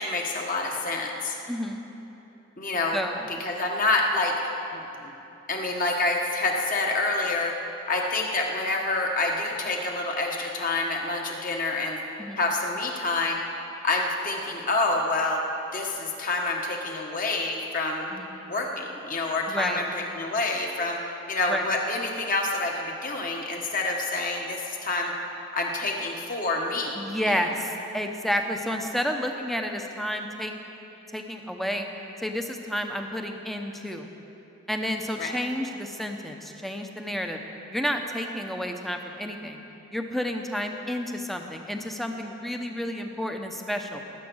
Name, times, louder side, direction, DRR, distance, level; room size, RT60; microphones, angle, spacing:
voice 1, 0.0-1.3 2.6-3.0 3.4-4.3 4.7-5.1 5.5-7.5 7.9-12.0 12.4-13.4 13.8-15.4 15.7-18.1 18.5-21.0 21.3-25.1 25.5-27.0 35.2-35.4, left 2 dB, 40° left, 0 dB, 1.5 m, -27 dB
voice 2, 1.5-1.8 2.9-3.4 12.2-12.4 18.1-18.4 19.5-19.8 21.5-21.7 26.9-30.5 31.1-31.9 32.2-34.1 34.7-37.4 37.7-39.6 39.9-44.0, equal, ahead, 4 dB, 0.8 m, -30 dB
19.0 x 8.3 x 6.3 m, 3.0 s
head